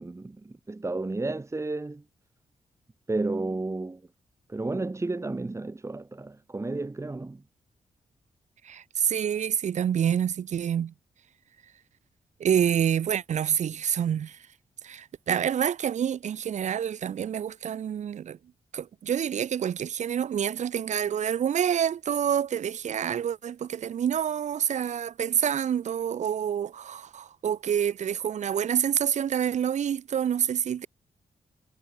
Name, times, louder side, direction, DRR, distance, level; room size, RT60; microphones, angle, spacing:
voice 1, 0.0-2.0 3.1-4.0 4.5-7.4, right 2 dB, 20° right, 1.7 m, -32 dB
voice 2, 8.6-10.9 12.4-14.4 14.8-18.4 18.7-30.9, right 9 dB, 70° right, 0.8 m, -27 dB
cardioid pair, 75°, 13 cm